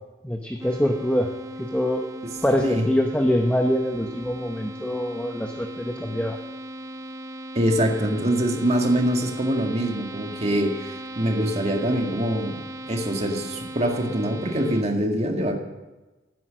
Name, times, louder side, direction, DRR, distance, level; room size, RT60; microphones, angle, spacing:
voice 1, 0.2-1.3 1.6-2.1 2.4-6.4, equal, 5° left, 3 dB, 0.9 m, -24 dB
sound 1, 0.6-14.8, right 1 dB, 15° right, 0.6 m, -38 dB
voice 2, 7.5-12.6 12.9-15.6, right 1 dB, 35° right, 3 dB, 1.8 m, -24 dB
16.5 x 9.4 x 6.4 m, 1.1 s
head